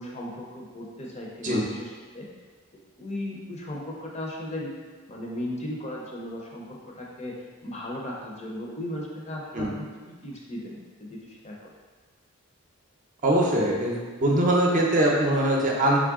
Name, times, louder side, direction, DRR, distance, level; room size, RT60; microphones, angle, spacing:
voice 1, 0.0-2.3 3.0-4.7 5.1-7.3 7.6-11.7, left 1 dB, 30° left, -3 dB, 0.6 m, -36 dB
voice 2, 13.2-13.9 14.2-16.0, right 1 dB, 35° right, -2 dB, 0.6 m, -22 dB
3.8 x 3.2 x 3.6 m, 1.4 s
head